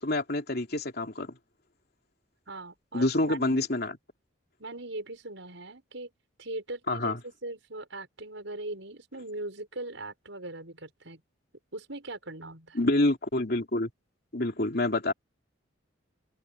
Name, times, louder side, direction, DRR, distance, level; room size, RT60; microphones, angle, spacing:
voice 1, 0.0-1.3 2.9-4.0 6.9-7.2 12.7-13.9 14.3-15.1, left 2 dB, 55° left, 2.8 m, -27 dB
voice 2, 2.5-3.7 4.6-6.1 6.4-11.2 11.7-12.8, right 2 dB, 70° right, 6.3 m, -40 dB
head